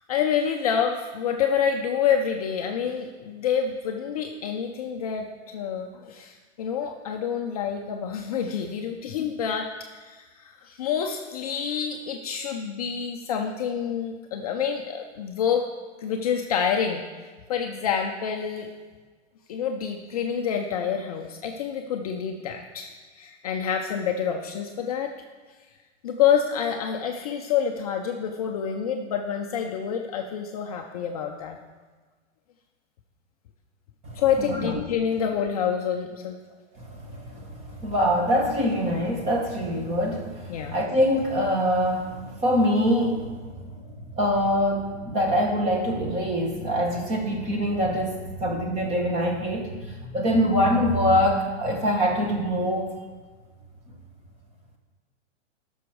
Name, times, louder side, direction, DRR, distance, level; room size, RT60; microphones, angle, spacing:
voice 1, 0.0-9.7 10.0-15.6 16.0-18.7 19.5-25.1 26.0-31.6 34.1-36.4 40.5-40.8, left 7 dB, 30° left, 3 dB, 0.5 m, -27 dB
voice 2, 36.9-43.3 44.2-49.7 50.0-53.0, equal, 15° right, 2 dB, 1.1 m, -24 dB
13.0 x 6.3 x 4.6 m, 1.4 s
hypercardioid pair, 160°, 36 cm